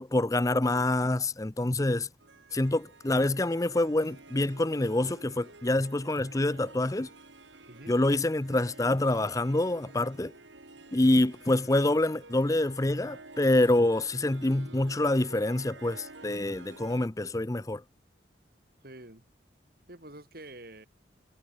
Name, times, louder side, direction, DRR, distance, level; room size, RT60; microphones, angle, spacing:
voice 1, 0.0-2.1 2.5-7.1 7.9-10.3 10.9-17.8, left 1 dB, 20° left, 0.6 m, -26 dB
Harp, 2.2-17.1, right 2 dB, 90° right, 6.7 m, -51 dB
voice 2, 18.8-19.3 19.9-20.9, right 1 dB, 55° right, 3.4 m, -47 dB
head